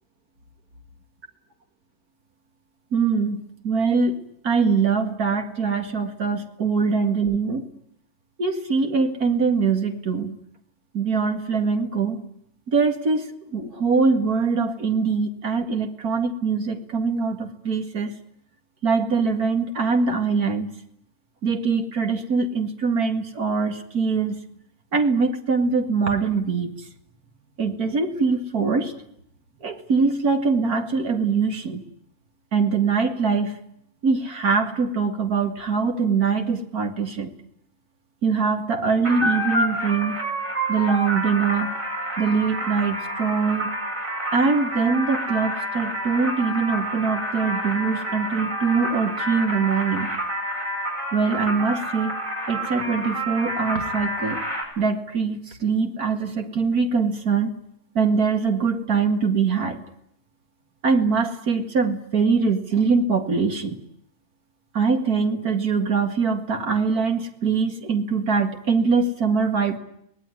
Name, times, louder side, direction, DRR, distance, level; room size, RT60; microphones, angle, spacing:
voice 1, 2.9-4.2 4.4-7.6 8.4-10.3 10.9-12.2 12.7-18.1 18.8-20.7 21.4-24.4 24.9-26.7 27.6-28.9 29.6-31.8 32.5-33.6 34.0-37.3 38.2-40.2 40.7-41.7 42.2-43.7 44.3-50.1 51.1-52.1 52.5-54.4 54.8-57.6 57.9-59.8 60.8-63.8 64.7-69.8, right 5 dB, 90° right, 5 dB, 2.7 m, -23 dB
sound 1, 39.0-54.6, right 1 dB, 60° right, 7.4 m, -28 dB
25.5 x 19.0 x 9.8 m, 0.74 s
omnidirectional pair, 1.5 m